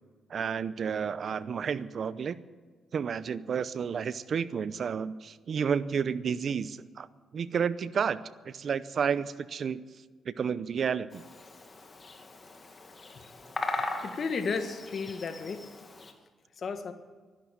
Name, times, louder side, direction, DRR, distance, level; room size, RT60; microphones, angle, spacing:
voice 1, 0.3-2.4 2.9-7.1 7.3-9.8 10.2-11.2, right 7 dB, 60° right, 17 dB, 0.7 m, -31 dB
Bird vocalization bird call bird song, 11.1-16.1, left 3 dB, 40° left, 2.1 m, -39 dB
voice 2, 14.0-15.7 16.6-16.9, left 5 dB, 55° left, 9 dB, 1.6 m, -33 dB
12.0 x 11.5 x 8.8 m, 1.4 s
supercardioid pair, 65°, 0 cm